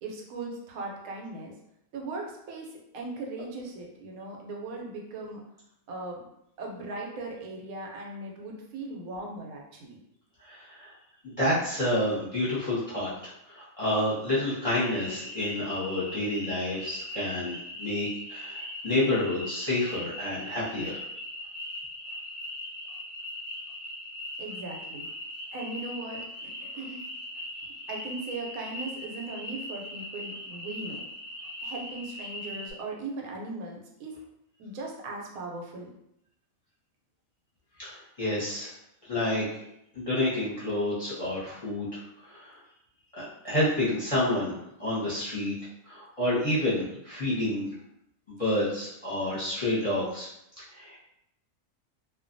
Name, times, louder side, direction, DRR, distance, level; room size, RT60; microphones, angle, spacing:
voice 1, 0.0-1.5 1.9-5.4 5.9-6.3 6.6-10.0 24.4-25.1 25.5-27.0 27.9-31.0 31.6-34.2 34.6-35.9, right 2 dB, 85° right, -1 dB, 1.0 m, -38 dB
voice 2, 10.4-10.9 11.2-21.0 37.8-38.7 39.0-39.5 39.9-42.6 43.1-44.5 44.8-45.5 45.8-47.7 48.3-50.3 50.7-51.0, left 1 dB, 30° left, -10 dB, 0.7 m, -29 dB
sound 1, 14.6-32.7, left 1 dB, 30° right, 0.7 m, -40 dB
2.4 x 2.2 x 2.5 m, 0.79 s
omnidirectional pair, 1.4 m